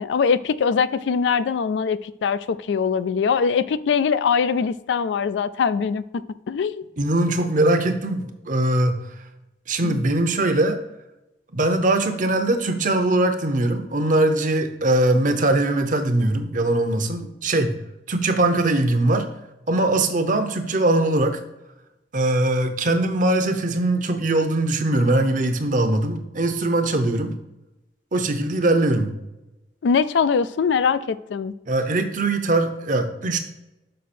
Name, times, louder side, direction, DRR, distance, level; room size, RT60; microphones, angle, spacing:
voice 1, 0.0-6.9 9.8-10.0 29.8-31.5, left 6 dB, 80° left, 15 dB, 0.3 m, -22 dB
voice 2, 7.0-8.9 9.7-10.8 11.5-17.8 18.1-19.3 19.7-21.4 22.1-27.4 28.1-29.1 31.7-33.4, right 2 dB, 45° right, 7 dB, 0.8 m, -21 dB
6.5 x 5.1 x 4.3 m, 0.96 s
head